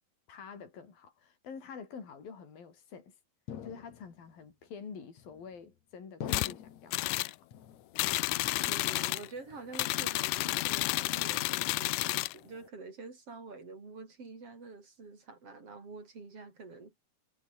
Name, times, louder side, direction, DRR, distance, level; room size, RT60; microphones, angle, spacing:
voice 1, 0.3-3.2 3.6-7.5, left 6 dB, 70° left, 6.5 m, -47 dB
sound 1, 3.5-4.3 5.2-5.7 6.2-7.0 7.5-8.1 8.4-9.2 9.5-9.9 10.4-11.0, left 9 dB, 55° left, 2.9 m, -46 dB
sound 2, 6.3-6.5 6.9-7.3 8.0-9.3 9.7-12.4, left 20 dB, 90° left, 1.8 m, -31 dB
voice 2, 8.7-17.0, right 4 dB, 40° right, 5.5 m, -47 dB
omnidirectional pair, 4.3 m